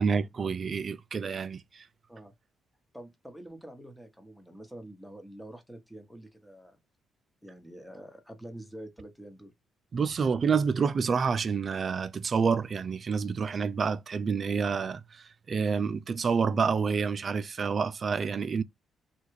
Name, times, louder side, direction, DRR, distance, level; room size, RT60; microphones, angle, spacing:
voice 1, 0.0-1.9 9.9-18.6, right 5 dB, 45° right, 0.4 m, -28 dB
voice 2, 2.9-6.8 7.4-9.5, right 1 dB, ahead, 1.0 m, -46 dB
3.2 x 2.3 x 3.0 m
cardioid pair, 90°, 0 cm